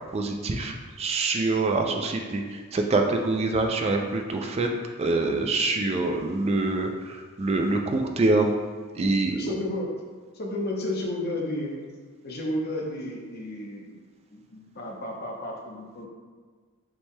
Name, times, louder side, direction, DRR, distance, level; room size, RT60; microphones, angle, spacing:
voice 1, 0.1-4.7 5.0-8.5 9.0-9.5, right 2 dB, 30° right, 3 dB, 0.3 m, -25 dB
voice 2, 8.9-9.9 10.3-11.7 12.2-14.0 14.3-16.1, left 1 dB, 45° left, -1 dB, 0.7 m, -32 dB
7.0 x 3.2 x 2.2 m, 1.5 s
head